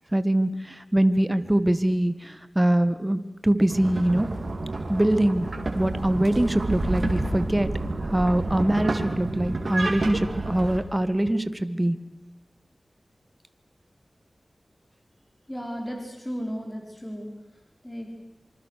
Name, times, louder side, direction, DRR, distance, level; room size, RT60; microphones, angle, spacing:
voice 1, 0.1-4.3 4.9-5.5 5.7-7.7 8.1-12.0, right 1 dB, 15° right, 12 dB, 1.7 m, -23 dB
sound 1, 3.7-10.8, right 2 dB, 60° right, 3.9 m, -29 dB
voice 2, 15.5-17.3 17.8-18.1, equal, 10° left, 1 dB, 5.3 m, -34 dB
26.5 x 26.0 x 6.7 m, 0.95 s
wide cardioid pair, 65°, 0 cm